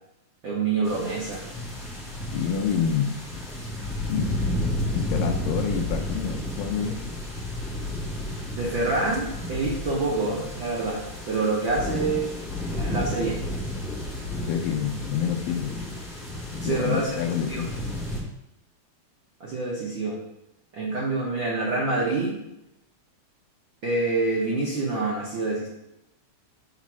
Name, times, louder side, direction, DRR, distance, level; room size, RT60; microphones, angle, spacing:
voice 1, 0.4-1.4 8.5-12.3 12.7-13.4 16.6-17.2 17.5-17.6 19.4-20.2 20.7-22.4 23.8-25.7, right 3 dB, 65° right, -5 dB, 1.2 m, -26 dB
sound 1, 0.8-18.2, left 1 dB, 25° left, 2.4 m, -32 dB
voice 2, 2.3-3.2 4.1-4.3 4.9-7.0 14.4-15.7 16.5-17.7, left 7 dB, 80° left, 2 dB, 2.4 m, -27 dB
6.5 x 4.2 x 6.1 m, 0.85 s
omnidirectional pair, 3.9 m